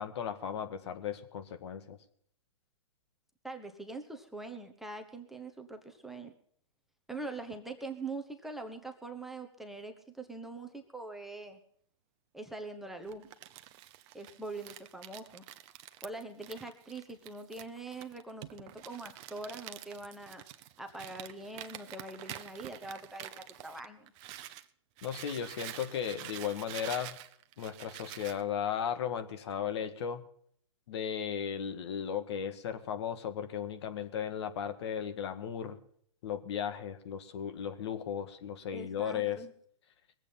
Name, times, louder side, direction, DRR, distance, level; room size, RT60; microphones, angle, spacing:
voice 1, 0.0-2.0 25.0-27.2 27.6-30.2 30.9-35.8 36.2-39.4, left 8 dB, 55° left, 9 dB, 1.8 m, -36 dB
voice 2, 3.4-6.3 7.1-11.6 12.3-13.3 14.1-15.4 16.0-20.4 20.8-23.3 23.6-24.1 38.7-39.5, right 2 dB, ahead, 3 dB, 1.0 m, -43 dB
Crumpling crinkling, 13.1-24.7 25.0-28.4, right 13 dB, 35° right, 0.8 m, -47 dB
21.5 x 8.3 x 5.6 m, 0.62 s
hypercardioid pair, 130°, 17 cm